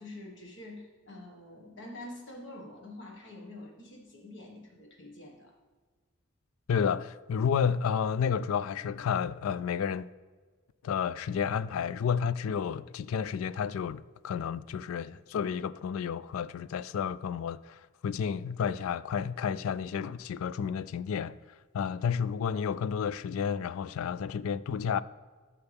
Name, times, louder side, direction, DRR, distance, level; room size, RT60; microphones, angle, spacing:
voice 1, 0.0-5.5, left 1 dB, 60° left, 1.7 m, -46 dB
voice 2, 6.7-10.1 10.8-21.3 21.7-25.0, left 7 dB, 80° left, 0.3 m, -31 dB
12.5 x 5.8 x 3.5 m
head